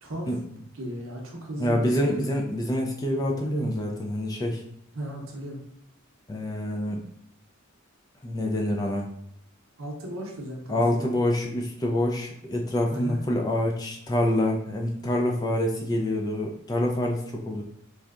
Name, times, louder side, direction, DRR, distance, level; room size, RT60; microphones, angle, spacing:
voice 1, 0.0-0.3 0.7-2.4 4.9-5.6 9.8-11.1 12.9-13.2, right 1 dB, 65° right, 0 dB, 0.7 m, -35 dB
voice 2, 1.6-4.6 6.3-7.0 8.2-9.1 10.7-17.6, left 1 dB, 20° left, 1 dB, 0.3 m, -26 dB
3.3 x 2.7 x 2.4 m, 0.73 s
head